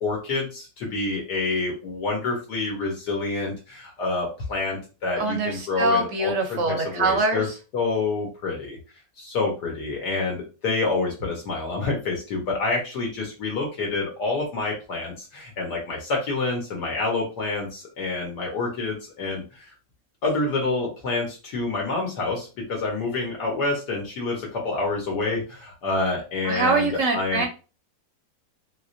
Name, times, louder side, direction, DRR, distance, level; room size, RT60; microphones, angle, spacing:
voice 1, 0.0-0.4 0.9-3.5 4.0-7.5 7.7-8.7 9.3-10.4 10.6-15.1 15.6-17.7 18.0-19.4 20.2-21.3 21.5-22.4 22.7-24.4 24.6-25.4 25.8-27.5, left 3 dB, 75° left, -1 dB, 1.5 m, -27 dB
voice 2, 5.2-7.4 26.4-27.5, right 3 dB, 65° right, 3 dB, 0.8 m, -23 dB
3.3 x 3.1 x 2.5 m, 0.33 s
omnidirectional pair, 1.8 m